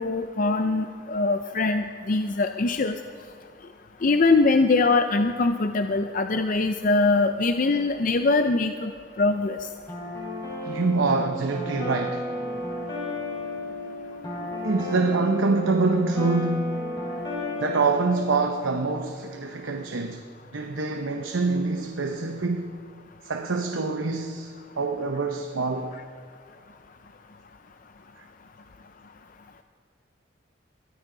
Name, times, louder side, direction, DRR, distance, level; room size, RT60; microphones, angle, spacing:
voice 1, 0.0-3.0 4.0-8.9 9.2-9.6, left 3 dB, 45° left, 0.5 m, -22 dB
sound 1, 9.9-18.6, left 1 dB, 25° left, 4.6 m, -33 dB
voice 2, 10.6-12.3 14.6-16.8 17.6-20.2 20.5-22.7 23.2-26.0, right 3 dB, 90° right, 0.9 m, -25 dB
22.0 x 14.0 x 3.9 m
head